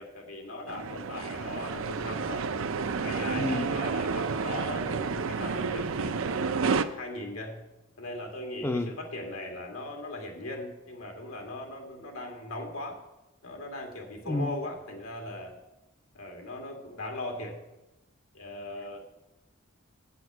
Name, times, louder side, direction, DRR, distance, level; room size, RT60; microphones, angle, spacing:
voice 1, 0.0-2.5 3.0-7.6 8.0-13.0 13.4-15.6 16.1-17.6 18.3-19.0, left 1 dB, 90° left, 2 dB, 2.2 m, -39 dB
sound 1, 0.7-6.8, right 5 dB, 75° right, 0.5 m, -30 dB
voice 2, 3.4-3.7 8.6-8.9 14.3-14.6, left 2 dB, 10° left, 6 dB, 0.5 m, -29 dB
8.8 x 8.0 x 6.1 m, 0.98 s
head